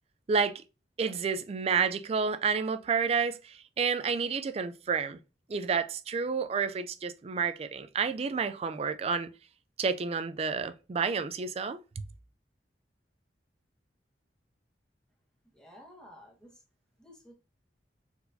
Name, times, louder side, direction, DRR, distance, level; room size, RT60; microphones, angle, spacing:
voice 1, 0.3-0.6 1.0-5.2 5.5-9.3 9.8-12.0, right 5 dB, 35° right, 0.3 m, -30 dB
voice 2, 15.5-16.6 17.0-17.3, left 1 dB, 5° left, 1.2 m, -53 dB
4.5 x 4.0 x 2.6 m
head